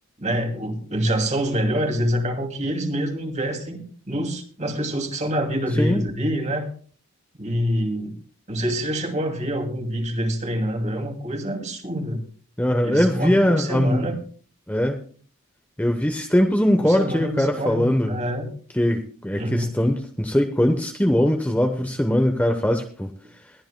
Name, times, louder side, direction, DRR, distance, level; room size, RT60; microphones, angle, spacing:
voice 1, 0.2-6.7 7.4-8.1 8.5-12.3 12.8-14.2 16.8-18.5 19.3-19.7, equal, 30° right, 4 dB, 2.5 m, -26 dB
voice 2, 12.6-14.1 14.7-15.0 15.8-18.1 18.7-23.1, equal, 5° left, 4 dB, 0.9 m, -21 dB
21.5 x 12.5 x 2.2 m, 0.43 s
head